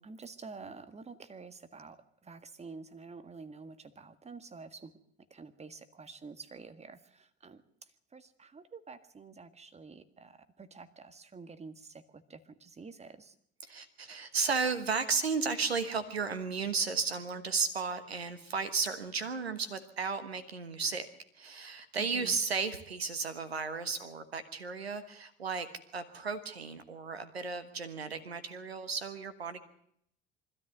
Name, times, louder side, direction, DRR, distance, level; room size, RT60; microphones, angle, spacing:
voice 1, 0.0-5.0 5.3-13.4 22.0-22.4, right 4 dB, 20° right, 11 dB, 1.7 m, -49 dB
voice 2, 13.6-21.1 21.3-29.6, right 5 dB, 80° right, 12 dB, 1.3 m, -34 dB
24.0 x 13.5 x 8.0 m, 0.71 s
figure-of-eight pair, 60°, 31 cm